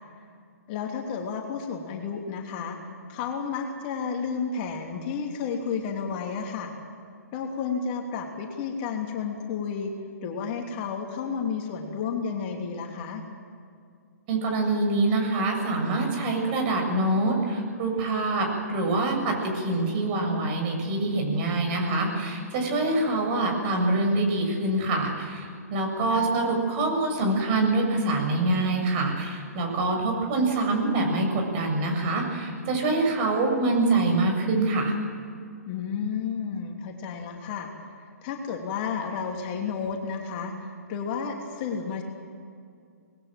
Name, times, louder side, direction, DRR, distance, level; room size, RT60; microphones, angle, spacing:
voice 1, 0.7-2.8 3.1-6.7 7.3-9.9 10.2-13.2 26.1-26.3 35.7-37.7 38.2-42.0, left 6 dB, 35° left, 2 dB, 3.0 m, -31 dB
voice 2, 14.3-34.9, right 2 dB, 35° right, 2 dB, 7.3 m, -25 dB
26.5 x 20.5 x 7.7 m, 2.3 s
figure-of-eight pair, 125°, 9 cm